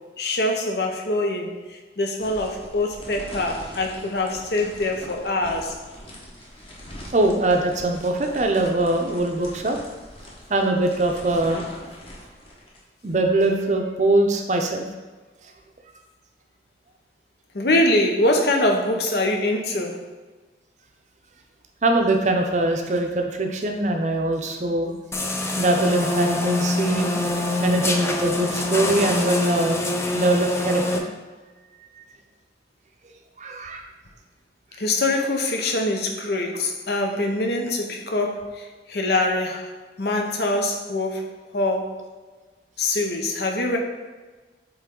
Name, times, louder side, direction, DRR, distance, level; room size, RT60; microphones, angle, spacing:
voice 1, 0.0-5.8 17.5-20.0 34.8-39.7 40.0-41.9 42.8-43.8, left 2 dB, 65° left, 2 dB, 0.9 m, -24 dB
sound 1, 2.2-12.8, left 1 dB, 30° left, 1.2 m, -42 dB
voice 2, 7.1-9.8 10.5-11.7 13.0-14.8 21.8-24.9 25.6-27.1 27.6-29.9 30.1-31.1 33.4-33.8, right 2 dB, 40° right, 3 dB, 0.6 m, -22 dB
sound 2, 25.1-31.0, left 2 dB, 15° left, 0.4 m, -25 dB
8.1 x 3.2 x 3.7 m, 1.3 s
head